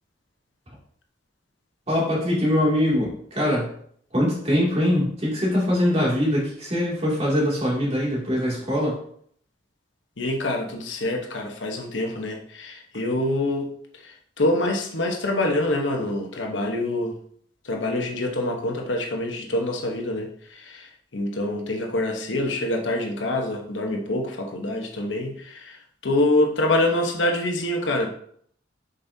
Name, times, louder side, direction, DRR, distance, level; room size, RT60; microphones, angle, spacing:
voice 1, 1.9-3.7 4.1-9.0, left 1 dB, 35° right, -5 dB, 2.5 m, -22 dB
voice 2, 10.2-17.2 17.6-28.1, left 1 dB, 75° left, 2 dB, 1.1 m, -26 dB
7.1 x 5.3 x 2.8 m, 0.63 s
head